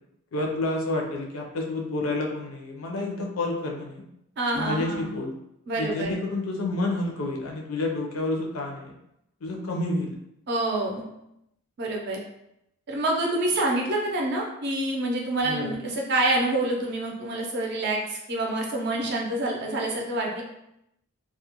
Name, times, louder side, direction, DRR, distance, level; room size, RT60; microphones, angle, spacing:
voice 1, 0.3-4.0 4.5-5.3 5.8-8.9 9.4-10.2 15.4-15.8, left 2 dB, 75° left, 0 dB, 0.5 m, -29 dB
voice 2, 4.4-5.1 5.7-6.1 10.5-11.1 11.8-12.2 12.9-20.4, right 2 dB, 50° right, -1 dB, 0.5 m, -27 dB
2.3 x 2.1 x 2.8 m, 0.82 s
head